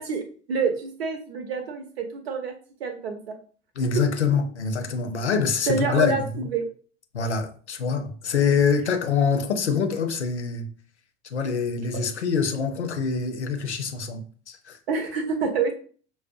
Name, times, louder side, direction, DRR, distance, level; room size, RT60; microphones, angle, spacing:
voice 1, 0.0-2.5 2.8-3.3 5.7-6.7 14.9-15.7, right 5 dB, 65° right, 0.8 m, -27 dB
voice 2, 3.8-6.4 7.1-10.7 11.3-14.8, left 5 dB, 80° left, 0.6 m, -25 dB
5.3 x 2.0 x 2.5 m
figure-of-eight pair, 70°, 34 cm